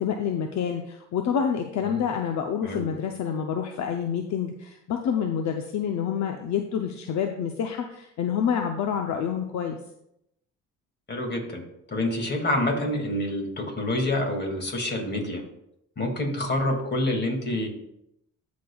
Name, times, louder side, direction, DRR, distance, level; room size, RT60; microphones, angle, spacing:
voice 1, 0.0-9.8, left 7 dB, 65° left, 5 dB, 0.7 m, -28 dB
voice 2, 11.1-11.6 11.9-15.4 16.0-17.7, left 1 dB, 35° left, 2 dB, 2.2 m, -27 dB
15.5 x 5.2 x 2.3 m, 0.79 s
cardioid pair, 90°, 30 cm